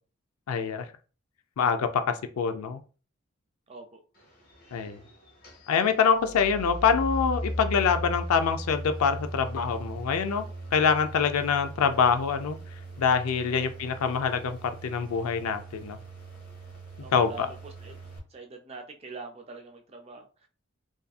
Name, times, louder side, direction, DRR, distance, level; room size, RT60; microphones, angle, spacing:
voice 1, 0.5-0.9 1.6-2.8 4.7-5.0 5.7-10.4 10.7-12.6 13.0-16.0 17.1-17.5, left 6 dB, 85° left, 8 dB, 0.4 m, -25 dB
voice 2, 3.7-4.0 13.5-13.6 17.0-18.0 18.3-20.5, right 3 dB, 30° right, 3 dB, 0.3 m, -44 dB
sound 1, 4.1-18.2, right 1 dB, 45° left, 0.8 m, -39 dB
2.5 x 2.5 x 2.3 m, 0.36 s
head